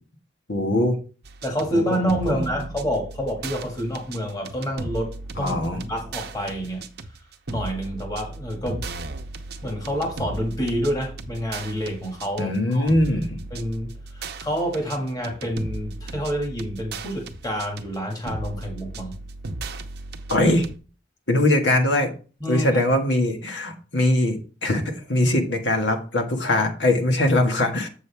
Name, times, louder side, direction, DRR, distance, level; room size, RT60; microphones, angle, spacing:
voice 1, 0.5-1.0 1.7-2.4 5.4-5.8 12.4-13.4 20.3-20.7 21.3-22.1 22.5-27.9, left 1 dB, 85° left, 4 dB, 1.7 m, -22 dB
sound 1, 1.2-20.8, right 2 dB, 60° right, 0.8 m, -36 dB
voice 2, 1.4-5.6 5.8-6.8 7.5-8.8 9.6-12.9 13.5-19.1 22.4-22.8, equal, 20° left, 0 dB, 2.0 m, -28 dB
7.9 x 6.4 x 3.4 m, 0.36 s
head